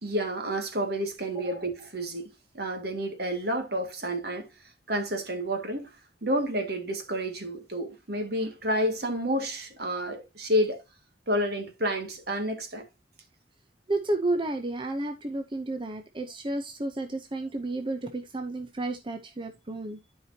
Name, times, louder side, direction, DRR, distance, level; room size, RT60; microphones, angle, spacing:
voice 1, 0.0-4.5 4.9-5.9 6.2-10.8 11.3-12.9, equal, 60° right, 2.0 m, -30 dB
voice 2, 13.9-20.0, right 2 dB, 30° right, 0.7 m, -31 dB
12.5 x 4.9 x 2.8 m
head